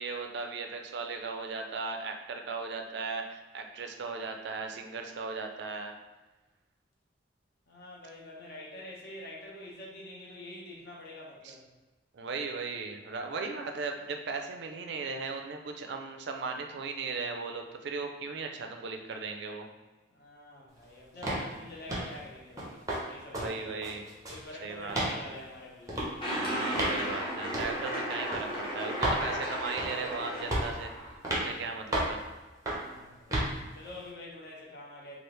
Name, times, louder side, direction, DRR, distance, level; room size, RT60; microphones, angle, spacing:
voice 1, 0.0-6.0 11.4-11.6 12.1-19.7 23.3-24.1 24.6-25.2 26.3-32.2, right 4 dB, 60° right, 4 dB, 0.4 m, -37 dB
voice 2, 7.7-11.7 20.1-24.0 24.3-26.2 32.7-33.4 33.7-35.2, left 2 dB, 50° left, -3 dB, 0.8 m, -46 dB
sound 1, 21.2-21.5 21.9-22.1 22.6-23.0 23.3-23.5 23.8-24.4 24.9-25.1 25.9-26.1 26.7-27.0 27.5-27.7 28.3-28.4 29.0-29.2 29.8-30.1 30.5-30.8 31.2-31.5 31.9-32.2 32.7-32.9 33.3-33.5, right 1 dB, 20° right, 0.6 m, -31 dB
sound 2, 26.2-31.2, equal, 25° left, 0.9 m, -35 dB
3.3 x 2.4 x 3.0 m, 1.2 s
head